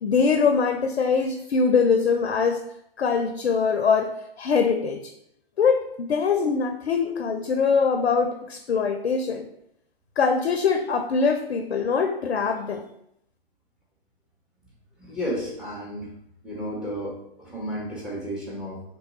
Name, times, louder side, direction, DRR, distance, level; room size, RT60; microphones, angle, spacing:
voice 1, 0.0-2.6 3.0-4.1 4.4-5.0 5.6-9.5 10.2-12.8, left 5 dB, 85° left, 5 dB, 0.5 m, -23 dB
voice 2, 15.0-16.1 16.4-18.8, equal, ahead, -4 dB, 0.7 m, -32 dB
3.0 x 2.2 x 4.1 m, 0.76 s
figure-of-eight pair, 125°, 31 cm